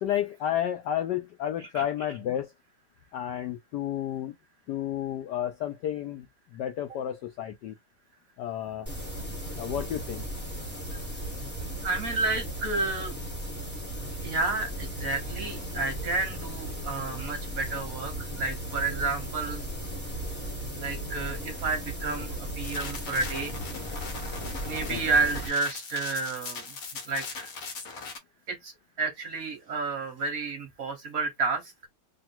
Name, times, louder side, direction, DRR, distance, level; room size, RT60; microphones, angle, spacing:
voice 1, 0.0-2.5 3.1-4.3 4.7-6.3 6.5-7.7 8.4-8.9 9.6-10.2 24.9-25.0, left 11 dB, 75° left, 1.0 m, -31 dB
sound 1, 8.9-25.5, right 1 dB, 5° left, 1.2 m, -36 dB
voice 2, 11.8-13.2 14.2-19.6 20.7-23.6 24.6-26.7 27.1-27.5 28.5-31.7, right 3 dB, 50° right, 1.1 m, -31 dB
sound 2, 22.6-28.2, left 4 dB, 55° left, 1.1 m, -39 dB
3.4 x 2.5 x 4.2 m
omnidirectional pair, 2.3 m